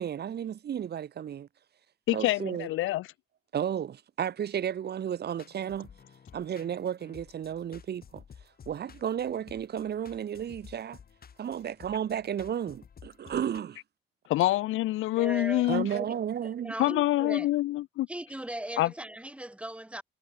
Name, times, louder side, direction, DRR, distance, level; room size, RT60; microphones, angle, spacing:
voice 1, 0.0-1.5 2.1-2.7 3.5-5.9 6.3-8.2 8.7-11.0 11.4-13.8 15.6-16.7, right 9 dB, 55° right, 1.4 m, -33 dB
voice 2, 2.1-3.1 14.3-15.9 16.8-18.1 18.8-18.9, left 16 dB, 90° left, 1.3 m, -26 dB
sound 1, 5.3-13.6, left 7 dB, 50° left, 7.8 m, -53 dB
voice 3, 15.2-17.5 18.1-20.0, right 1 dB, 5° right, 2.4 m, -38 dB
cardioid pair, 90°, 20 cm